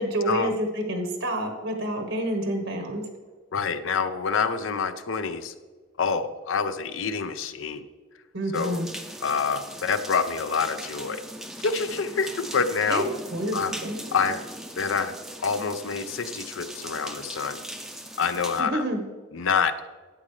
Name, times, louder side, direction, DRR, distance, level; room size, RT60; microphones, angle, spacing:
voice 1, 0.0-3.0 8.3-8.9 12.9-13.0 13.3-14.0 18.6-19.0, right 1 dB, 75° right, 4 dB, 1.3 m, -28 dB
voice 2, 3.5-5.5 6.0-7.8 8.5-8.8 9.2-11.2 11.6-13.1 13.5-13.7 14.1-14.4 14.8-15.1 15.4-17.6 18.2-18.8 19.3-19.9, left 5 dB, 75° left, 11 dB, 0.6 m, -27 dB
sound 1, 8.5-18.6, right 1 dB, ahead, 0.5 m, -39 dB
12.5 x 8.6 x 3.3 m, 1.4 s
head